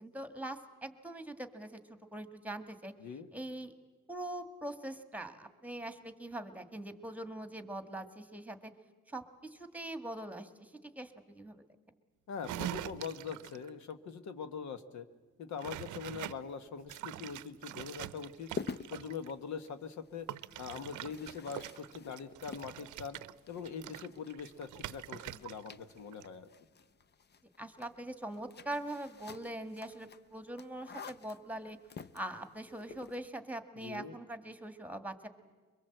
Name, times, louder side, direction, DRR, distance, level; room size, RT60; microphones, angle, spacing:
voice 1, 0.0-1.8 2.1-2.9 3.3-3.7 4.1-8.7 9.1-11.6 27.6-31.8 32.1-35.3, right 1 dB, 5° right, 9 dB, 1.7 m, -42 dB
voice 2, 12.3-15.1 15.4-18.5 18.9-20.3 20.6-23.2 23.5-26.5 33.8-34.1, left 6 dB, 65° left, 10 dB, 1.3 m, -43 dB
sound 1, 12.4-13.7 15.6-16.4 16.9-19.3 20.3-25.7 26.0-26.2, right 13 dB, 80° right, 0.7 m, -44 dB
sound 2, 17.6-33.3, left 5 dB, 35° left, 0.7 m, -50 dB
23.0 x 22.0 x 7.9 m, 1.4 s
cardioid pair, 90°, 30 cm